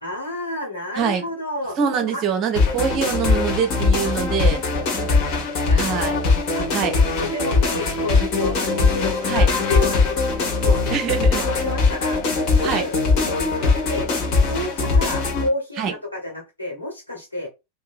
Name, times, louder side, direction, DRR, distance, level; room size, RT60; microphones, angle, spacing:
voice 1, 0.0-1.8 2.1-2.2 4.9-5.2 5.6-6.7 7.2-10.8 11.4-12.2 12.5-14.1 14.5-17.5, left 1 dB, 85° left, 1.5 m, -31 dB
voice 2, 1.8-4.6 5.8-6.2 6.7-7.0 9.3-9.5 10.9-11.4 12.6-12.8 15.8-15.9, right 7 dB, 35° right, 0.8 m, -24 dB
sound 1, 2.6-15.5, left 4 dB, 40° left, 1.3 m, -20 dB
2.9 x 2.6 x 2.5 m
figure-of-eight pair, 90°, 0 cm